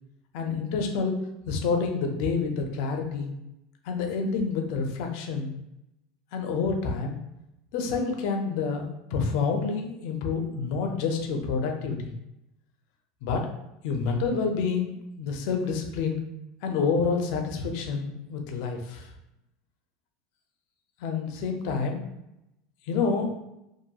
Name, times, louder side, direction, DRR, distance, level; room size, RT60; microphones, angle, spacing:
voice 1, 0.3-1.2 1.5-3.3 3.8-5.5 6.3-7.2 7.7-12.1 13.2-13.5 13.8-16.2 16.6-19.1 21.0-22.0 22.9-23.3, left 5 dB, 55° left, 3 dB, 0.4 m, -28 dB
2.7 x 2.6 x 2.3 m, 0.87 s
supercardioid pair, 170°, 0 cm